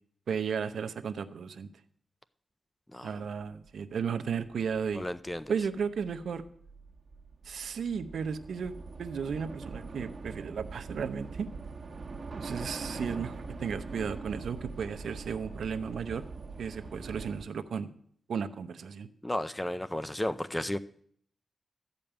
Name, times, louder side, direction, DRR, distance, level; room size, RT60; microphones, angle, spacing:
voice 1, 0.3-1.7 3.0-5.1 5.5-6.4 7.4-8.7 9.0-11.5 12.4-16.2 16.6-17.9 18.3-19.1, right 6 dB, 80° right, 9 dB, 0.7 m, -34 dB
Train / Subway metro underground, 4.4-17.4, right 4 dB, 45° right, 1.4 m, -43 dB
voice 2, 4.9-5.5 19.2-20.8, left 1 dB, 10° left, 13 dB, 0.5 m, -33 dB
13.5 x 5.3 x 8.8 m, 0.62 s
cardioid pair, 80°, 0 cm